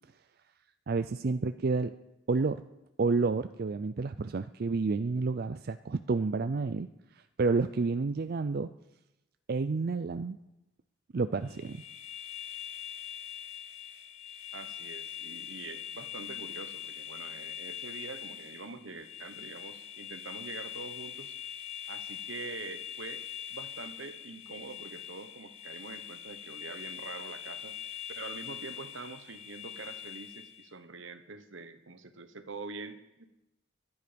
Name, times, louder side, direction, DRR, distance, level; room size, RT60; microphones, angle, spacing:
voice 1, 0.9-1.9 2.3-2.6 3.0-6.9 7.4-8.7 9.5-10.4 11.1-11.8, right 4 dB, 50° right, 11 dB, 0.4 m, -29 dB
sound 1, 11.4-30.7, left 11 dB, 85° left, 1.9 m, -43 dB
voice 2, 14.5-21.4 21.9-27.8 28.2-33.3, right 4 dB, 75° right, 10 dB, 1.2 m, -45 dB
23.5 x 9.6 x 5.2 m, 0.96 s
head